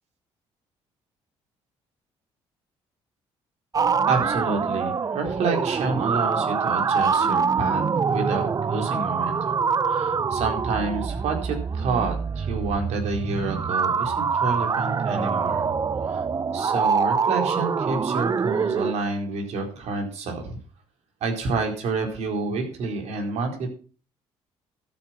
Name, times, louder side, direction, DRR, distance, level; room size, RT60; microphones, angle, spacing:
sound 1, 3.7-18.9, right 5 dB, 35° right, 0.6 m, -25 dB
voice 1, 4.1-9.6 9.8-15.6 16.0-16.2 16.5-20.6 21.2-23.7, right 4 dB, 70° right, 3 dB, 4.4 m, -29 dB
13.0 x 8.9 x 5.9 m, 0.39 s
supercardioid pair, 80°, 12 cm